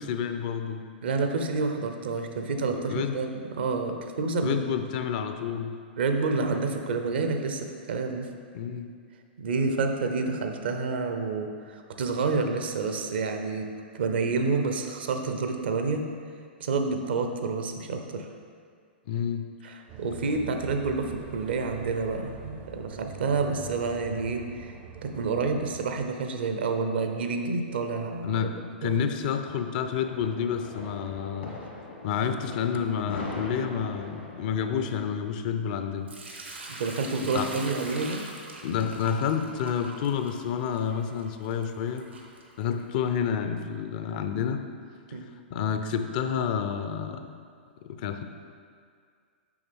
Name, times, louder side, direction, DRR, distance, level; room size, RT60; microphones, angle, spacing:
voice 1, 0.0-0.8 2.7-3.1 4.4-5.8 8.5-8.9 19.1-19.5 23.6-23.7 28.2-28.6 28.8-31.6 32.0-36.1 37.2-37.5 38.6-42.1 42.6-44.6 45.5-47.3 47.8-48.2, left 7 dB, 50° left, 8 dB, 0.5 m, -29 dB
voice 2, 1.0-4.6 6.0-8.3 9.4-13.7 13.9-16.0 16.6-18.3 19.6-24.7 25.0-28.5 28.8-29.0 36.8-38.2 45.1-45.3, right 4 dB, 70° right, 5 dB, 0.7 m, -29 dB
sound 1, 19.9-26.1, right 8 dB, 35° right, 0.5 m, -44 dB
sound 2, 29.8-34.8, left 3 dB, 80° left, 1.7 m, -40 dB
Sink (filling or washing) / Liquid, 36.1-43.0, right 2 dB, 85° right, 1.0 m, -43 dB
7.1 x 5.1 x 3.4 m, 2.1 s
hypercardioid pair, 110°, 6 cm